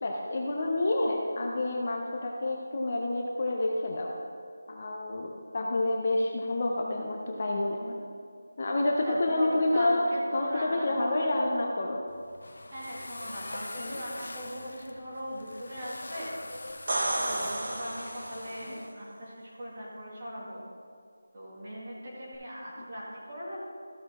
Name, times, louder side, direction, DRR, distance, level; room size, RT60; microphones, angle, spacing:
voice 1, 0.0-4.1 4.7-8.0 8.6-12.0 13.8-14.0 18.6-18.7, left 2 dB, 30° left, 0 dB, 0.6 m, -29 dB
voice 2, 8.8-11.6 12.7-16.4 17.2-20.6 21.3-23.6, equal, 25° right, -7 dB, 2.1 m, -39 dB
sound 1, 12.1-18.9, left 2 dB, 60° left, 0.7 m, -43 dB
sound 2, 16.7-18.6 22.3-22.4, right 1 dB, 40° right, 0.9 m, -32 dB
14.0 x 6.6 x 3.6 m, 2.2 s
figure-of-eight pair, 180°, 0 cm